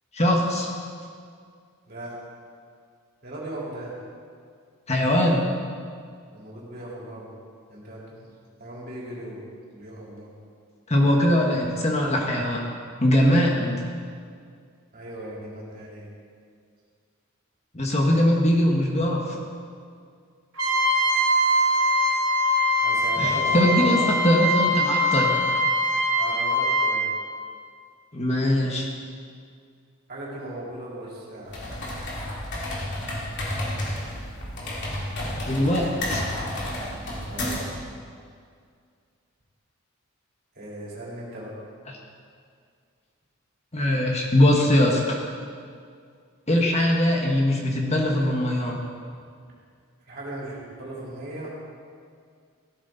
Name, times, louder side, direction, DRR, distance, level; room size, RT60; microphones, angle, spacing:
voice 1, 0.1-0.7 4.9-5.4 10.9-12.6 13.0-13.8 17.7-19.4 23.2-24.0 24.2-25.3 28.1-28.9 35.5-36.2 43.7-45.2 46.5-48.8, left 1 dB, 30° left, -1 dB, 1.5 m, -21 dB
voice 2, 1.9-2.2 3.2-3.9 6.3-7.3 7.7-8.3 8.6-9.4 9.7-10.3 14.9-16.1 22.8-24.1 26.2-27.1 30.1-31.6 37.2-37.8 40.5-41.6 50.1-51.5, right 1 dB, 45° right, -6 dB, 3.9 m, -37 dB
Trumpet, 20.6-27.0, equal, 65° right, 2.4 m, -22 dB
sound 1, 31.5-37.8, left 1 dB, 55° left, 3.1 m, -31 dB
16.0 x 13.5 x 4.1 m, 2.2 s
head